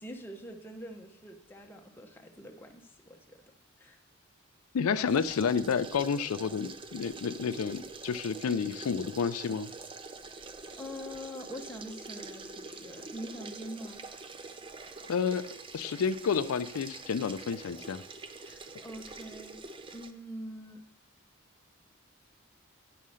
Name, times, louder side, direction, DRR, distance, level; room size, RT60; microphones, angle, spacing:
voice 1, 0.0-3.4 3.8-4.0 10.8-14.0 18.4-20.8, equal, 10° left, 3 dB, 0.8 m, -44 dB
voice 2, 4.7-9.7 15.1-15.5 15.7-18.0, left 6 dB, 85° left, 13 dB, 0.4 m, -30 dB
sound 1, 5.1-20.1, right 3 dB, 25° right, 0.5 m, -45 dB
9.3 x 5.6 x 6.3 m, 0.78 s
head